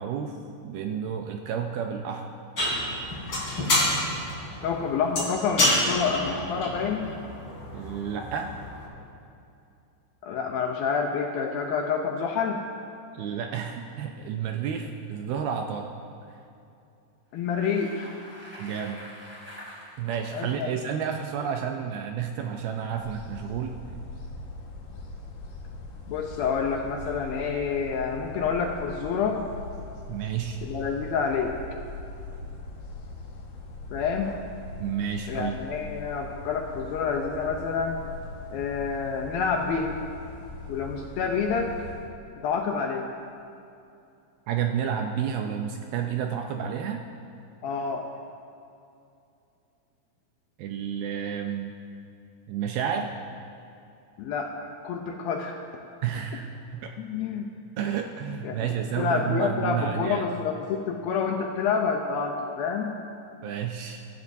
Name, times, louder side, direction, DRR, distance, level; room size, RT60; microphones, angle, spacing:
voice 1, 0.0-2.3 7.7-8.5 13.1-15.9 18.6-19.0 20.0-23.7 30.1-30.6 34.8-35.6 44.5-47.0 50.6-51.7 52.5-53.1 56.0-56.9 57.8-60.3 63.4-64.0, right 8 dB, 80° right, 3 dB, 2.3 m, -30 dB
sound 1, 2.6-8.9, left 1 dB, 30° left, 3.5 m, -28 dB
voice 2, 4.6-7.1 10.2-12.6 17.3-18.1 20.3-20.7 26.1-29.4 30.6-31.6 33.9-34.4 35.3-38.0 38.5-39.9 40.7-41.7 42.4-43.1 47.6-48.1 54.2-55.5 57.0-57.5 58.4-58.5 59.0-62.9, left 5 dB, 80° left, 2 dB, 2.2 m, -28 dB
Bicycle, 17.3-20.6, equal, 5° right, 2.1 m, -46 dB
sound 2, 22.9-42.1, left 2 dB, 65° left, 2.8 m, -41 dB
23.0 x 13.0 x 2.7 m, 2.7 s
omnidirectional pair, 4.9 m